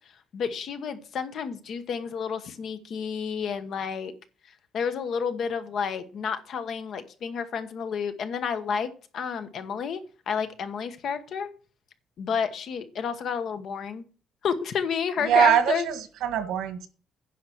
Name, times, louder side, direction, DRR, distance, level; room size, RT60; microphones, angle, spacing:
voice 1, 0.3-4.1 4.7-10.0 10.3-11.5 12.2-14.1 14.4-15.9, left 6 dB, 45° left, 10 dB, 1.1 m, -30 dB
voice 2, 15.2-16.9, right 8 dB, 85° right, 10 dB, 1.7 m, -23 dB
10.0 x 5.7 x 6.4 m, 0.38 s
cardioid pair, 175°, 0 cm